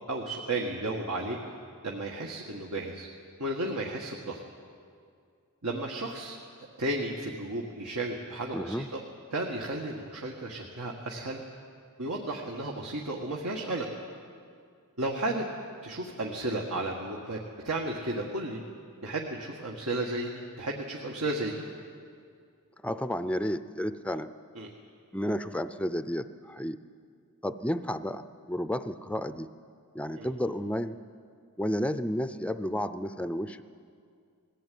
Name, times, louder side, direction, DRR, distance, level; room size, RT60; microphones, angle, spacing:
voice 1, 0.1-1.4 1.8-3.1 3.4-4.4 5.6-6.4 6.8-9.0 9.3-11.4 12.0-13.9 15.0-15.5 15.8-17.4 17.6-18.6 19.0-21.6 24.6-24.7 30.2-30.3, right 2 dB, 85° right, -1 dB, 1.7 m, -33 dB
voice 2, 8.5-8.9 22.8-24.3 25.1-26.8 27.4-29.5 29.9-31.0 31.6-33.6, equal, 5° left, 11 dB, 0.5 m, -32 dB
20.5 x 15.0 x 9.3 m, 2.3 s
head